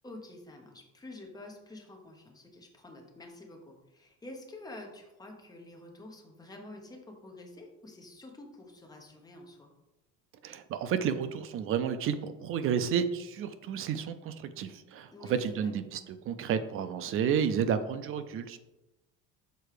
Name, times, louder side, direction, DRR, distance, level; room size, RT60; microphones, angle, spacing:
voice 1, 0.0-9.7 15.1-15.7, left 2 dB, 10° left, 2 dB, 1.0 m, -48 dB
voice 2, 10.4-15.1 15.4-18.6, right 7 dB, 40° right, 11 dB, 0.5 m, -31 dB
6.8 x 4.4 x 4.9 m, 0.99 s
cardioid pair, 160°, 32 cm